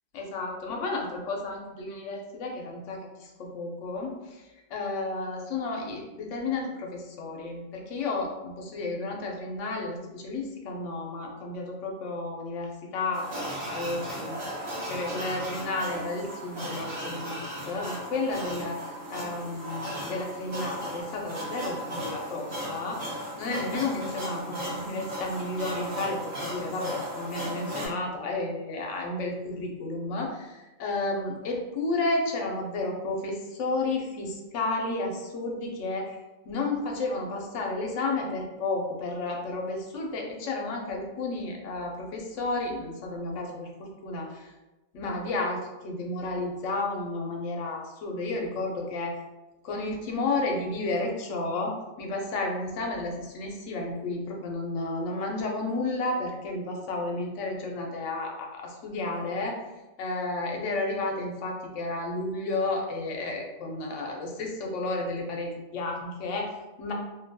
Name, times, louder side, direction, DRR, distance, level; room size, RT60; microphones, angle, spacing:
voice 1, 0.1-18.8 19.1-36.2 36.4-44.5 44.9-49.1 49.6-59.6 60.0-66.5 66.8-66.9, left 2 dB, 85° left, 0 dB, 0.9 m, -32 dB
sound 1, 13.1-27.9, equal, 55° right, 0.9 m, -36 dB
2.6 x 2.2 x 2.6 m, 1.1 s
omnidirectional pair, 1.2 m